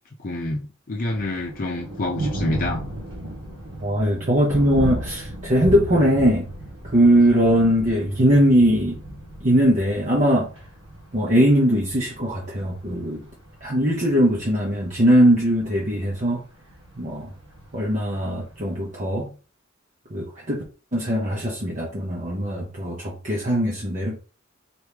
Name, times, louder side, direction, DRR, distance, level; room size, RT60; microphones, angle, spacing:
voice 1, 0.2-2.8, left 1 dB, 45° left, 0.6 m, -27 dB
Thunder, 1.0-18.9, right 1 dB, 65° right, 1.5 m, -35 dB
voice 2, 3.8-6.5 6.8-9.0 9.4-10.5 11.1-13.2 13.6-16.4 17.0-17.3 17.7-19.3 20.1-20.6 20.9-24.2, equal, 40° right, 0.9 m, -20 dB
4.3 x 3.1 x 3.4 m
head